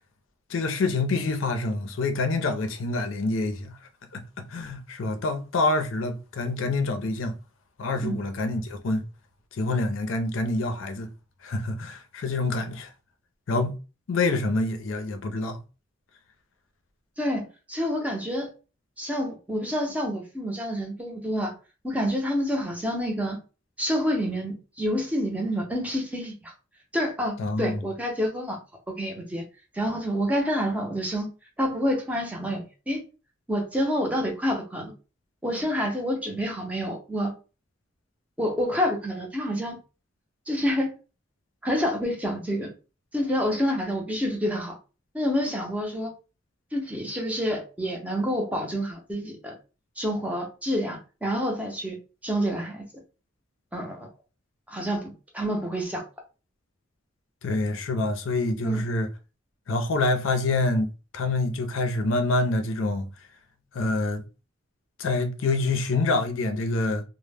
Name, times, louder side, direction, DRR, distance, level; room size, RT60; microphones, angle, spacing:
voice 1, 0.5-3.7 4.1-4.2 4.5-7.3 7.8-9.0 9.5-11.1 11.4-12.9 13.5-13.8 14.1-15.6 27.4-27.8 57.4-59.1 59.7-63.1 63.7-64.2 65.0-67.0, left 2 dB, 80° left, 0.4 m, -26 dB
voice 2, 17.2-18.5 19.0-21.5 21.8-23.4 23.8-26.5 26.9-28.6 28.9-29.4 29.7-31.3 31.6-33.0 33.5-34.9 35.4-37.3 38.4-39.8 40.5-40.9 41.6-42.7 43.1-44.8 45.1-46.1 46.7-49.6 50.0-52.0 52.2-52.8 53.7-54.1 54.7-56.0 58.6-58.8, equal, 5° right, 0.5 m, -28 dB
2.0 x 2.0 x 3.3 m
head